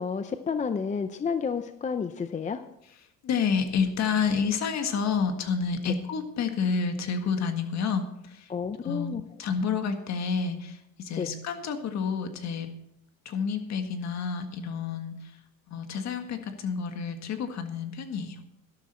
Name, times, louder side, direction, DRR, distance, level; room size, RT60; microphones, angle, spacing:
voice 1, 0.0-2.6 8.5-9.2 11.2-11.3, left 6 dB, 20° left, 9 dB, 0.5 m, -30 dB
voice 2, 3.2-8.5 8.8-12.7 13.3-15.4 15.7-18.4, left 5 dB, 50° left, 6 dB, 1.7 m, -29 dB
12.5 x 12.0 x 4.4 m, 0.82 s
cardioid pair, 140°, 35 cm